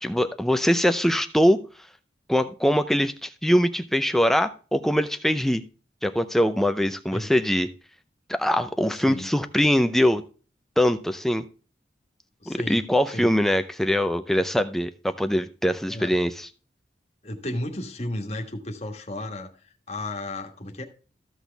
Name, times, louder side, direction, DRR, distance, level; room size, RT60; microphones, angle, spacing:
voice 1, 0.0-1.6 2.3-5.6 6.0-7.7 8.3-10.2 10.8-11.4 12.5-16.5, equal, ahead, 0.5 m, -22 dB
voice 2, 12.4-12.8 13.1-13.3 15.9-16.1 17.2-20.8, left 1 dB, 35° left, 1.5 m, -33 dB
14.5 x 6.1 x 3.4 m
head